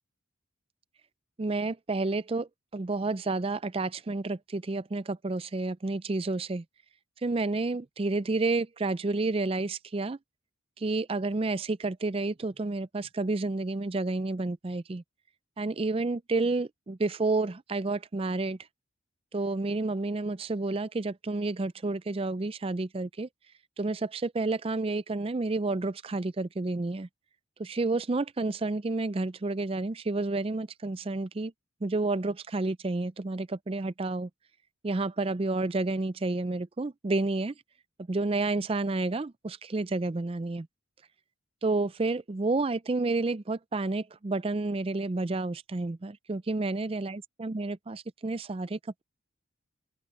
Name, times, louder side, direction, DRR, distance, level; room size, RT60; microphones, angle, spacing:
voice 1, 1.4-6.6 7.2-10.2 10.8-15.0 15.6-18.6 19.3-23.3 23.8-27.1 27.6-31.5 31.8-34.3 34.8-37.5 38.1-40.7 41.6-49.0, right 3 dB, 25° right, 0.4 m, -30 dB
open air
head